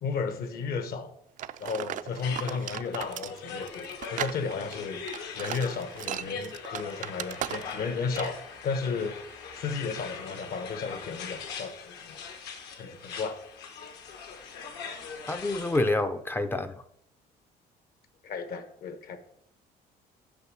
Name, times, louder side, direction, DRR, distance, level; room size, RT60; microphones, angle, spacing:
voice 1, 0.0-1.1 1.6-5.0 5.4-9.2 9.5-12.2 12.8-13.4 18.2-19.2, left 5 dB, 65° left, 1.0 m, -34 dB
sound 1, 1.4-7.9 8.2-8.4, right 11 dB, 50° right, 0.4 m, -37 dB
sound 2, 2.2-15.9, left 5 dB, 80° left, 1.4 m, -41 dB
voice 2, 15.3-16.8, left 2 dB, 15° left, 0.4 m, -28 dB
6.7 x 5.3 x 6.2 m
cardioid pair, 110°, 17 cm